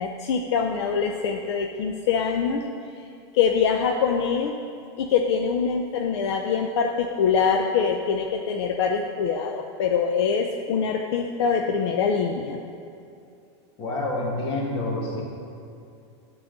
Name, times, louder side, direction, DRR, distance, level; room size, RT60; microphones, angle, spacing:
voice 1, 0.0-2.6 3.3-4.5 5.0-12.6, left 6 dB, 70° left, 3 dB, 0.5 m, -24 dB
voice 2, 13.8-15.2, left 2 dB, 35° left, -2 dB, 1.8 m, -28 dB
8.5 x 3.9 x 6.6 m, 2.6 s
supercardioid pair, 145°, 15 cm